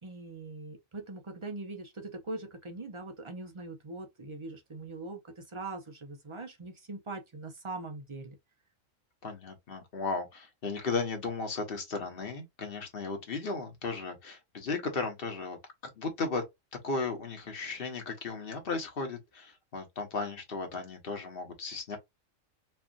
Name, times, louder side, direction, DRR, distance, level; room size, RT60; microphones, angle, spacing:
voice 1, 0.0-8.4, right 2 dB, 35° right, 0.5 m, -42 dB
voice 2, 9.2-15.6 16.0-16.4 16.8-22.0, left 4 dB, 45° left, 1.2 m, -35 dB
4.4 x 2.4 x 2.4 m
omnidirectional pair, 1.4 m